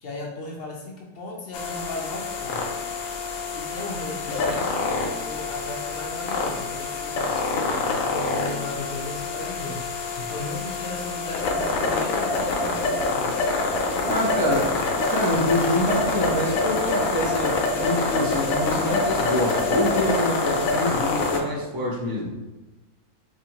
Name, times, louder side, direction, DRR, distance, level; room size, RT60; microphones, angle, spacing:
voice 1, 0.0-2.6 3.5-9.8 10.2-13.3, left 2 dB, 55° left, -1 dB, 0.7 m, -36 dB
sound 1, 1.5-21.4, left 3 dB, 70° left, 1.0 m, -26 dB
voice 2, 14.0-14.8 15.1-22.3, left 1 dB, 20° right, -3 dB, 0.6 m, -25 dB
4.2 x 2.7 x 2.8 m, 1.1 s
omnidirectional pair, 1.5 m